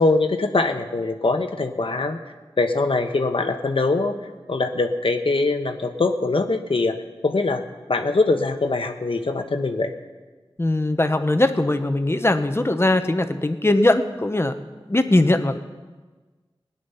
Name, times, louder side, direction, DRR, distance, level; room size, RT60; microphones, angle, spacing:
voice 1, 0.0-2.2 2.6-4.1 4.5-7.0 7.2-7.6 7.9-9.9, left 3 dB, 70° left, 6 dB, 1.1 m, -22 dB
voice 2, 10.6-14.5 14.9-15.6, left 2 dB, 25° left, 8 dB, 1.0 m, -20 dB
18.5 x 9.8 x 5.7 m, 1.3 s
wide cardioid pair, 55°, 10 cm